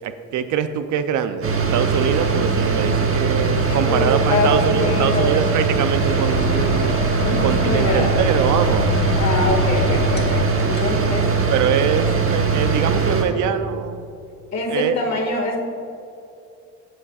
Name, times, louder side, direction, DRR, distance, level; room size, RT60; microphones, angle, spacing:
voice 1, 0.0-7.0 7.3-9.1 11.5-14.0 14.7-15.0, right 8 dB, 75° right, 10 dB, 0.6 m, -23 dB
sound 1, 1.4-13.2, right 4 dB, 45° right, 1.2 m, -20 dB
voice 2, 3.2-5.4 7.2-8.2 9.2-11.3 11.9-12.2 14.5-15.6, left 2 dB, 60° left, 0 dB, 2.0 m, -24 dB
sound 2, 6.0-11.1, left 5 dB, 35° left, 1.0 m, -27 dB
16.0 x 6.3 x 2.4 m, 2.6 s
cardioid pair, 90°, 30 cm